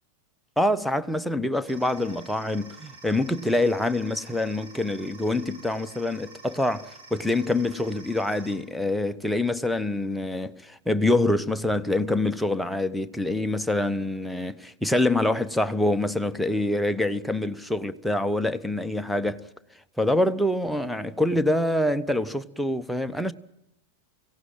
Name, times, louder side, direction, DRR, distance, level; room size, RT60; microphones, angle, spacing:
voice 1, 0.6-19.4 20.0-23.3, left 1 dB, ahead, 0.9 m, -25 dB
sound 1, 1.7-8.5, right 3 dB, 50° right, 7.4 m, -48 dB
24.5 x 17.0 x 9.1 m
figure-of-eight pair, 90°, 0 cm